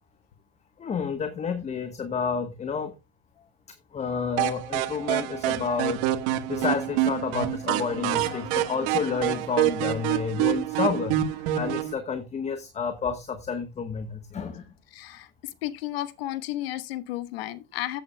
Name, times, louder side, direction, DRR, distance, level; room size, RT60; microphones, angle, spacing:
voice 1, 0.8-2.9 3.9-6.1 6.5-14.6 17.7-17.9, left 5 dB, 25° left, 1.2 m, -30 dB
sound 1, 4.4-11.9, right 13 dB, 70° right, 1.3 m, -27 dB
voice 2, 14.9-15.3 15.6-18.0, left 14 dB, 90° left, 1.2 m, -33 dB
14.0 x 8.5 x 2.2 m
supercardioid pair, 120°, 29 cm